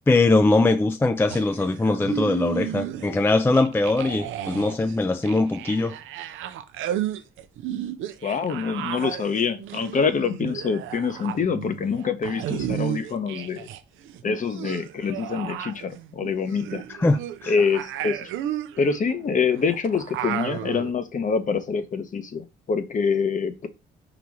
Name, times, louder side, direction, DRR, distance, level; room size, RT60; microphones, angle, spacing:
voice 1, 0.1-5.9 16.9-17.5, left 2 dB, 10° left, 0.3 m, -21 dB
sound 1, 1.3-3.2 3.5-13.8 14.0-20.9, right 11 dB, 85° right, 0.5 m, -33 dB
voice 2, 8.2-13.7 14.2-16.8 17.5-18.3 18.8-23.7, left 5 dB, 40° left, 0.7 m, -25 dB
3.9 x 2.9 x 4.7 m
cardioid pair, 90°, 20 cm